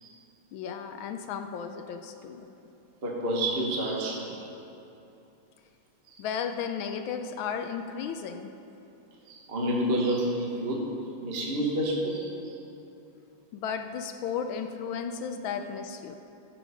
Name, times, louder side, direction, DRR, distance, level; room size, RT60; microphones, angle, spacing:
voice 1, 0.5-2.5 6.2-8.5 13.5-16.2, left 7 dB, 75° left, 6 dB, 1.3 m, -34 dB
voice 2, 3.0-4.4 9.3-10.8 11.2-12.3, right 1 dB, 35° right, -2 dB, 1.2 m, -28 dB
14.0 x 7.7 x 5.0 m, 2.8 s
omnidirectional pair, 2.4 m